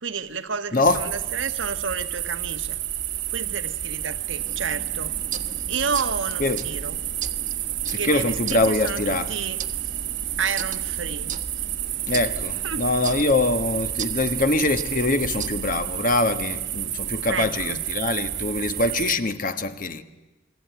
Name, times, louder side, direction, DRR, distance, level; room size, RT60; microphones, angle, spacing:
voice 1, 0.0-2.8 3.3-5.2 5.7-7.0 7.9-9.6 10.4-11.3 12.6-12.8 17.3-17.8, right 5 dB, 80° right, 1.4 m, -31 dB
sound 1, 0.8-19.1, right 12 dB, 65° right, 1.5 m, -30 dB
sound 2, 4.4-16.0, right 5 dB, 40° right, 1.2 m, -38 dB
voice 2, 7.9-9.3 12.1-20.0, left 2 dB, 45° left, 1.3 m, -23 dB
28.5 x 22.5 x 9.3 m
head